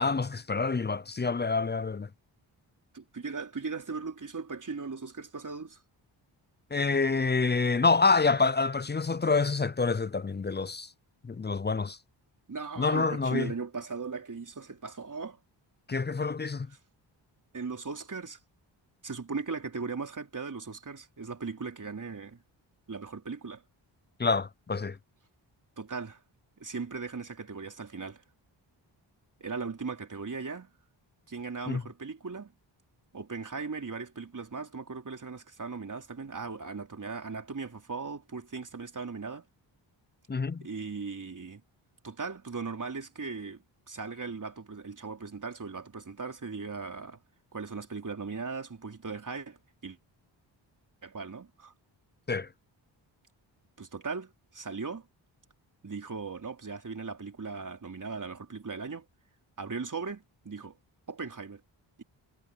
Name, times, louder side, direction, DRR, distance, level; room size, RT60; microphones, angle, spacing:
voice 1, 0.0-2.1 6.7-10.9 11.3-12.0 12.8-13.5 15.9-16.7 24.2-25.0 31.7-31.8 40.3-40.6 52.3-52.5, left 4 dB, 20° left, 0.6 m, -27 dB
voice 2, 2.9-5.8 12.5-15.4 17.5-18.4 19.0-22.4 22.9-23.6 25.8-26.2 26.6-28.2 29.4-30.7 31.3-32.5 33.1-39.4 40.6-41.6 42.0-43.6 43.9-47.2 47.5-50.0 51.0-51.7 53.8-55.1 55.8-59.0 59.6-60.8 61.1-61.6, right 4 dB, 40° right, 4.2 m, -38 dB
cardioid pair, 60°, 47 cm